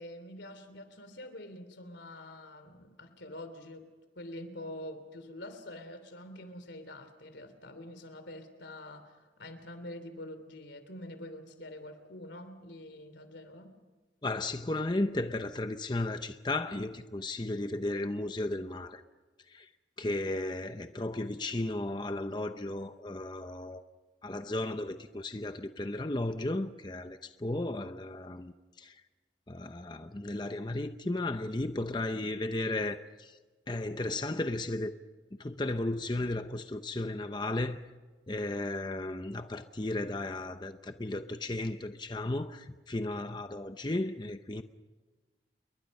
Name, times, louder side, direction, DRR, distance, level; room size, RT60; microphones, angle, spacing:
voice 1, 0.0-3.9 4.1-13.8, left 1 dB, 85° left, 3.2 m, -46 dB
voice 2, 14.2-19.0 19.5-19.7 20.0-23.8 24.2-29.0 29.5-33.4 33.7-34.9 35.4-37.8 38.3-44.6, left 2 dB, 25° left, 0.7 m, -34 dB
29.5 x 22.5 x 5.4 m
head